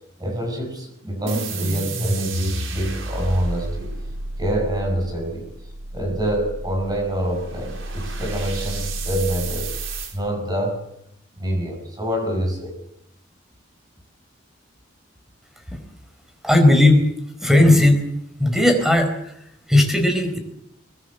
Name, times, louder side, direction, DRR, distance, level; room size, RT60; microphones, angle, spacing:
voice 1, 0.2-3.9 4.4-5.5 5.9-9.7 10.1-10.8 11.4-12.7, right 1 dB, 20° right, 3 dB, 7.3 m, -26 dB
sound 1, 1.3-10.1, right 2 dB, 85° right, 4.4 m, -30 dB
voice 2, 16.4-17.0 17.4-18.1 18.4-20.4, left 1 dB, ahead, 6 dB, 4.6 m, -16 dB
23.5 x 21.5 x 7.9 m, 0.76 s
head